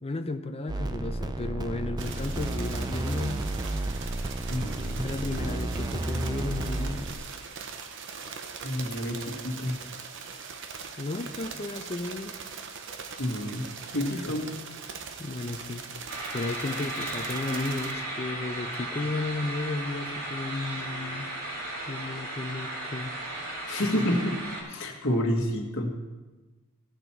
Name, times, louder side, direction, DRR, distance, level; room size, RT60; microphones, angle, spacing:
voice 1, 0.0-3.5 5.0-7.1 11.0-12.4 15.2-15.8 16.3-21.3 21.9-23.1, left 2 dB, 25° left, 7 dB, 0.5 m, -33 dB
sound 1, 0.7-7.1, right 2 dB, 20° right, 0.4 m, -32 dB
sound 2, 2.0-17.9, right 5 dB, 55° right, 0.8 m, -41 dB
voice 2, 4.5-5.1 8.6-9.7 13.2-13.6 13.9-14.5 23.7-24.4 24.7-25.9, left 1 dB, 60° left, 1 dB, 1.7 m, -29 dB
sound 3, 16.1-24.6, right 1 dB, 85° right, 3.1 m, -35 dB
17.0 x 6.7 x 4.5 m, 1.2 s
head